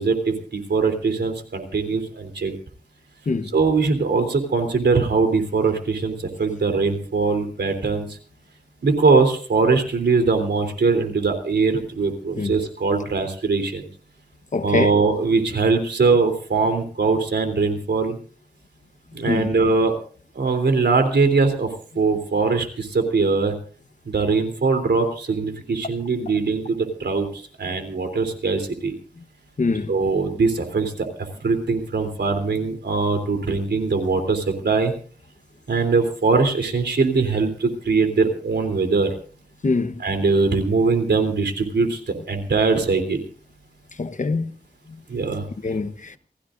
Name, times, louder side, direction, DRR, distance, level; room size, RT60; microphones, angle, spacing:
voice 1, 0.0-2.5 3.5-8.1 8.8-13.9 14.6-18.2 19.1-20.0 20.3-21.7 21.9-23.5 24.0-28.9 29.9-30.9 31.4-34.9 35.7-39.1 40.0-43.2 45.1-45.4, right 4 dB, 90° right, 3.3 m, -21 dB
voice 2, 14.5-14.9 19.3-19.5 29.6-29.9 39.6-39.9 44.0-44.5 45.6-46.1, left 3 dB, 45° left, 1.1 m, -23 dB
28.5 x 15.5 x 2.6 m
wide cardioid pair, 90°, 17 cm